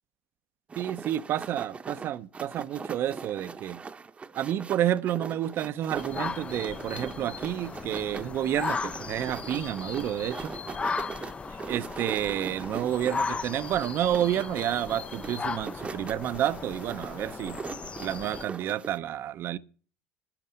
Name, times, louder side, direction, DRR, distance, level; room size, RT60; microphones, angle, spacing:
sound 1, 0.7-19.0, right 5 dB, 25° right, 0.8 m, -41 dB
voice 1, 0.8-3.8 4.3-10.5 11.7-17.6 18.0-19.6, right 11 dB, 55° right, 0.6 m, -30 dB
sound 2, 6.0-18.4, left 4 dB, 25° left, 0.5 m, -36 dB
12.0 x 6.6 x 9.4 m
supercardioid pair, 95°, 5 cm